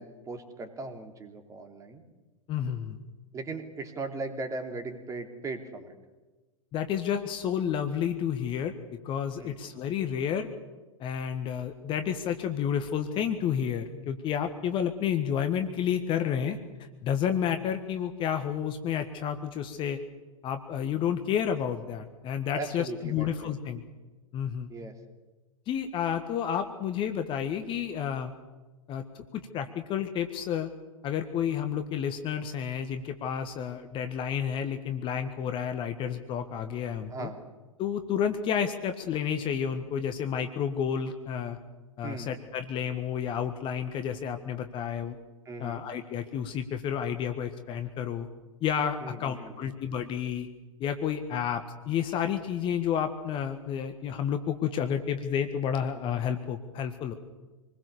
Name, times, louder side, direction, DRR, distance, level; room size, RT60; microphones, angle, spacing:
voice 1, 0.0-2.0 3.3-5.9 9.4-9.6 22.5-23.6 24.7-24.9 37.1-37.4 42.0-42.3 45.4-45.8 49.0-49.7, right 3 dB, 20° right, 5 dB, 3.1 m, -38 dB
voice 2, 2.5-3.0 6.7-8.7 9.0-10.5 11.0-16.6 17.0-20.0 20.4-23.8 24.3-24.7 25.7-28.3 28.9-30.7 31.0-37.3 37.8-41.6 42.0-45.2 45.6-48.3 48.6-50.5 50.8-57.1, left 8 dB, 30° left, 8 dB, 1.6 m, -30 dB
26.5 x 20.5 x 7.0 m, 1.2 s
figure-of-eight pair, 100°, 17 cm